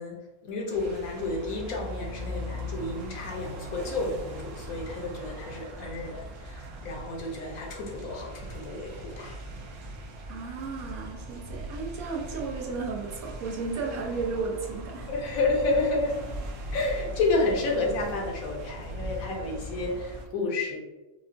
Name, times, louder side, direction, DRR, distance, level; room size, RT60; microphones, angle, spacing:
voice 1, 0.0-9.4 15.1-16.3 16.7-20.8, left 2 dB, 75° left, 0 dB, 1.2 m, -30 dB
sound 1, 0.7-20.3, equal, 70° right, 0.9 m, -40 dB
voice 2, 10.3-15.1, right 4 dB, 85° right, -2 dB, 1.2 m, -34 dB
4.7 x 2.2 x 2.6 m, 1.1 s
omnidirectional pair, 1.5 m